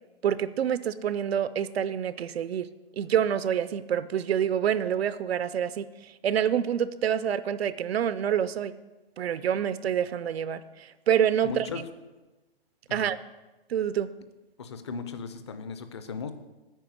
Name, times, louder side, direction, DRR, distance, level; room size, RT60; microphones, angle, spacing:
voice 1, 0.2-2.7 3.0-8.7 9.2-11.7 12.9-13.2 13.7-14.1, right 9 dB, 85° right, 15 dB, 0.6 m, -27 dB
voice 2, 11.4-11.8 12.9-13.0 14.6-16.3, left 5 dB, 30° left, 10 dB, 0.5 m, -36 dB
9.0 x 5.3 x 7.8 m, 1.1 s
hypercardioid pair, 165°, 30 cm